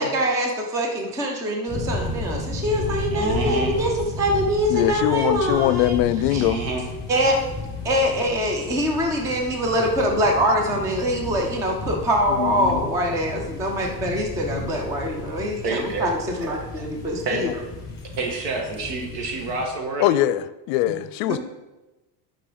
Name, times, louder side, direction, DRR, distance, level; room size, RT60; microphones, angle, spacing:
voice 1, 0.0-3.9 4.2-6.0 6.3-6.4 7.1-7.4 7.8-17.5, equal, 10° right, 0.3 m, -24 dB
sound 1, 1.7-19.6, left 2 dB, 5° left, 1.4 m, -33 dB
voice 2, 3.1-3.8 6.3-6.8 15.6-16.1 16.4-16.8 17.2-17.5 18.1-20.2 21.3-21.4, right 3 dB, 80° right, 2.0 m, -28 dB
voice 3, 4.7-6.6 12.3-12.9 17.3-17.5 20.0-21.4, left 13 dB, 75° left, 0.6 m, -22 dB
9.7 x 5.7 x 3.8 m
cardioid pair, 170°, 48 cm